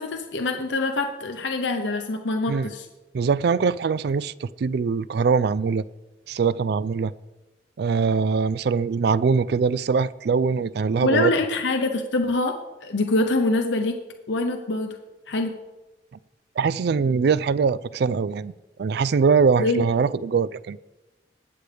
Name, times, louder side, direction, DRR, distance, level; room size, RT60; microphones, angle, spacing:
voice 1, 0.0-2.9 11.0-12.5 12.8-14.0 14.3-15.0 15.3-15.5 19.6-19.8, left 2 dB, 75° left, 0.8 m, -24 dB
voice 2, 3.1-5.8 6.3-7.1 7.8-11.3 16.6-18.5 18.8-20.8, right 5 dB, 60° right, 0.3 m, -22 dB
21.5 x 7.8 x 3.4 m
head